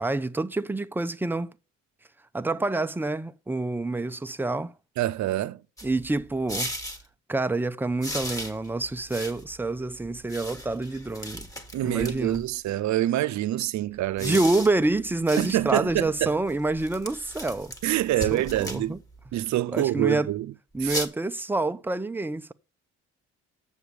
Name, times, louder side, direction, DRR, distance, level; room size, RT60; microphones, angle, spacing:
voice 1, 0.0-1.5 2.3-4.7 5.8-6.7 7.3-11.5 11.8-12.4 14.2-17.7 18.3-19.0 19.7-20.3 20.7-22.5, right 2 dB, 5° right, 0.6 m, -27 dB
voice 2, 5.0-5.6 11.7-14.4 15.4-16.4 17.8-19.0 19.3-20.5 20.8-21.0, right 14 dB, 70° right, 0.6 m, -26 dB
sound 1, 5.8-7.0 8.0-12.6 14.0-19.4 20.8-21.1, equal, 10° left, 1.4 m, -38 dB
7.2 x 6.9 x 6.4 m
cardioid pair, 90°, 30 cm